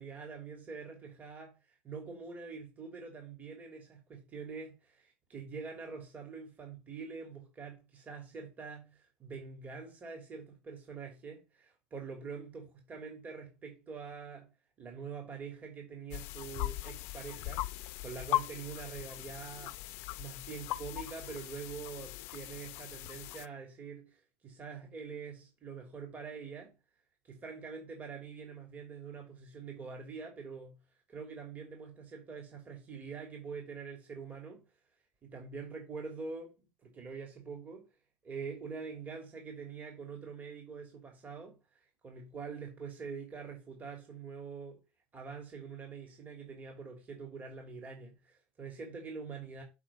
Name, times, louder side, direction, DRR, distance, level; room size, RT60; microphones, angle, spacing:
voice 1, 0.0-1.6 1.8-14.5 14.8-19.8 20.2-26.7 27.2-30.8 31.1-34.6 35.2-37.9 38.2-41.6 42.0-44.8 45.1-49.6, right 5 dB, 35° right, 3.0 m, -45 dB
sound 1, 16.1-23.5, left 15 dB, 70° left, 0.6 m, -39 dB
7.4 x 5.0 x 5.7 m
supercardioid pair, 95°, 5 cm